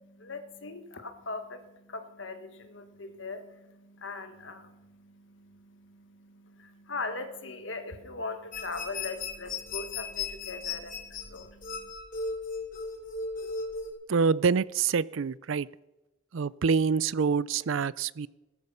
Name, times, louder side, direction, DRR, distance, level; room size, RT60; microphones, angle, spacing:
voice 1, 0.0-11.9, left 3 dB, 70° left, 8 dB, 1.5 m, -40 dB
sound 1, 8.5-13.9, left 4 dB, 45° left, 3.0 m, -36 dB
voice 2, 14.1-15.7 16.3-18.3, right 5 dB, 75° right, 21 dB, 0.5 m, -26 dB
17.5 x 13.5 x 5.6 m, 1.0 s
head